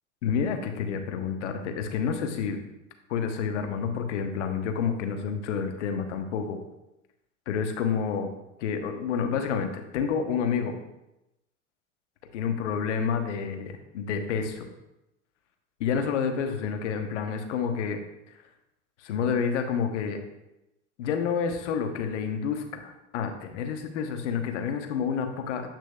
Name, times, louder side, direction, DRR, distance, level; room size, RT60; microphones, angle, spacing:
voice 1, 0.2-2.6 3.1-6.6 7.5-8.3 8.6-10.7 12.3-14.7 15.8-18.0 19.0-20.2 21.0-25.6, left 6 dB, 70° left, 6 dB, 1.1 m, -29 dB
8.7 x 6.0 x 2.4 m, 0.91 s
hypercardioid pair, 90°, 37 cm